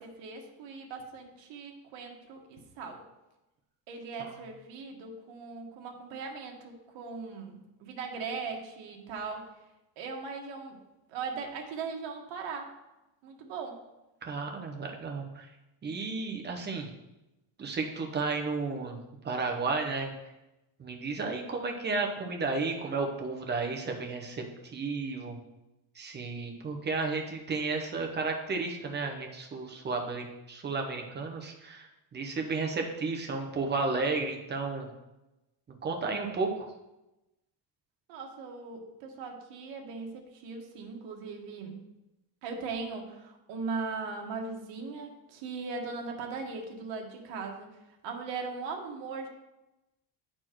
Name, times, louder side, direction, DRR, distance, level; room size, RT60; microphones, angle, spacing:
voice 1, 0.0-3.0 3.9-9.5 10.0-10.8 11.1-12.7 13.2-13.8 38.1-41.8 42.4-47.8 48.0-49.3, right 4 dB, 80° right, 2 dB, 1.5 m, -39 dB
voice 2, 14.2-15.5 15.8-16.9 17.6-19.0 19.2-20.1 20.8-25.4 25.9-34.9 35.8-36.7, right 4 dB, 25° right, 2 dB, 0.8 m, -33 dB
10.0 x 4.4 x 4.4 m, 0.97 s
cardioid pair, 175°, 44 cm